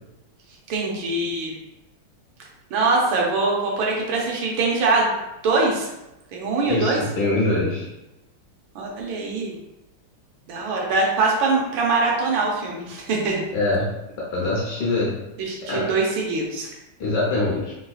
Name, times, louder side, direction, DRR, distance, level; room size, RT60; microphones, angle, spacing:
voice 1, 0.7-1.5 2.7-5.1 5.4-5.9 6.3-7.0 8.7-9.5 10.5-13.4 15.4-16.7, right 3 dB, 75° right, -2 dB, 1.4 m, -23 dB
voice 2, 6.6-7.9 13.5-13.9 14.2-15.1 15.7-15.9 17.0-17.7, left 2 dB, 65° left, -5 dB, 1.2 m, -23 dB
3.7 x 2.7 x 2.3 m, 0.93 s
omnidirectional pair, 2.4 m